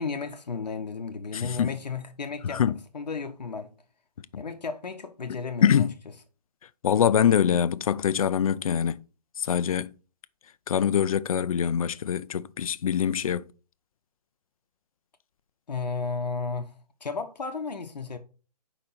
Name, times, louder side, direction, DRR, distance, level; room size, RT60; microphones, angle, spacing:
voice 1, 0.0-2.6 2.9-3.7 4.3-5.8 15.7-16.7 17.0-18.2, left 4 dB, 85° left, 0.8 m, -33 dB
voice 2, 1.3-1.8 2.4-2.8 4.3-4.4 5.3-5.9 6.8-9.0 9.4-9.9 10.7-13.4, left 8 dB, 60° left, 0.4 m, -24 dB
5.0 x 4.2 x 5.4 m
figure-of-eight pair, 145°, 21 cm